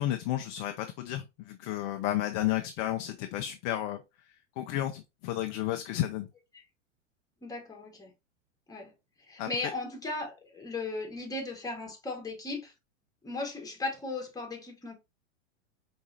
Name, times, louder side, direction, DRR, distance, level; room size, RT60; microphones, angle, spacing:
voice 1, 0.0-4.0 4.6-6.3 9.4-9.5, left 13 dB, 35° left, 0.4 m, -32 dB
voice 2, 7.4-8.1 8.7-8.9 9.3-12.7 13.2-15.0, left 3 dB, 10° left, 1.2 m, -37 dB
4.6 x 3.1 x 2.7 m
hypercardioid pair, 105°, 39 cm